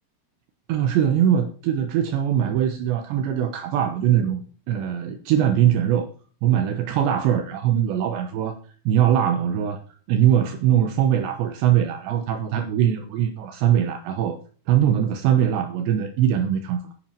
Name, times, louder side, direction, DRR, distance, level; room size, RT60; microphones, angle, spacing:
voice 1, 0.7-4.4 4.7-6.1 6.4-8.6 8.9-9.8 10.1-14.4 14.7-16.9, right 10 dB, 75° right, 7 dB, 3.2 m, -21 dB
10.5 x 10.5 x 4.6 m, 0.41 s
omnidirectional pair, 5.4 m